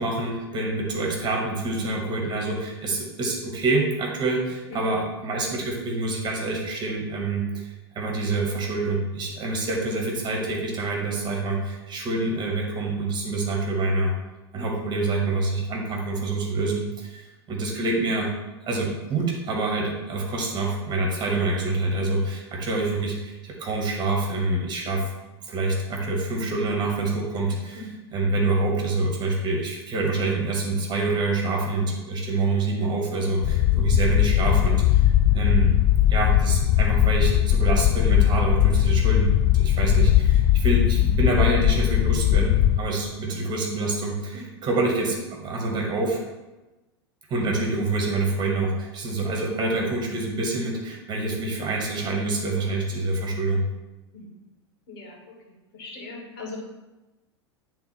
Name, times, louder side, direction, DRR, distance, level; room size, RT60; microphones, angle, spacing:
voice 1, 0.0-14.1 14.5-17.2 17.5-18.3 18.6-25.1 25.5-35.7 36.1-46.2 47.3-53.6, right 2 dB, 30° right, 0 dB, 1.9 m, -26 dB
voice 2, 4.5-4.8 14.5-14.7 27.7-27.9 33.7-33.9 44.3-44.4 54.1-54.3 54.9-55.2 55.7-56.6, left 3 dB, 60° left, -1 dB, 2.2 m, -39 dB
sound 1, 33.4-42.8, left 12 dB, 35° left, 0.4 m, -19 dB
10.5 x 3.7 x 3.5 m, 1.1 s
figure-of-eight pair, 90°, 14 cm